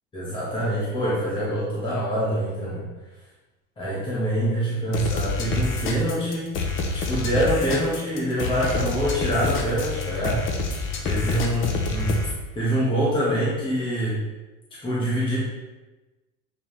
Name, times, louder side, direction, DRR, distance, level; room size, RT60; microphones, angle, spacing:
voice 1, 0.1-2.8 3.8-6.5 6.9-10.4 11.0-12.2 12.5-14.2 14.8-15.4, equal, 15° left, -8 dB, 1.4 m, -25 dB
sound 1, 4.9-12.3, left 3 dB, 35° left, 0.7 m, -27 dB
7.4 x 4.7 x 3.3 m, 1.1 s
cardioid pair, 165°, 36 cm